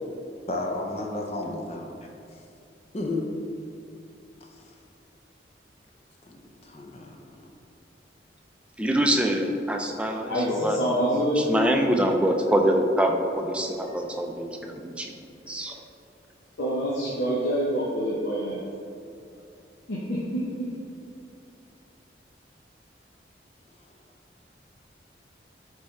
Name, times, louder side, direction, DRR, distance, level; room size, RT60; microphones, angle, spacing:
voice 1, 0.5-1.9 2.3-2.4 2.9-3.3 4.5-4.8 6.3-6.4 6.6-7.5, left 2 dB, 35° left, 1 dB, 0.6 m, -32 dB
voice 2, 8.8-15.1 15.5-15.8, right 1 dB, 5° right, 2 dB, 0.4 m, -25 dB
voice 3, 10.3-11.7 16.6-18.6 19.9-20.4, equal, 75° left, -6 dB, 0.9 m, -26 dB
9.6 x 3.6 x 3.2 m, 2.7 s
head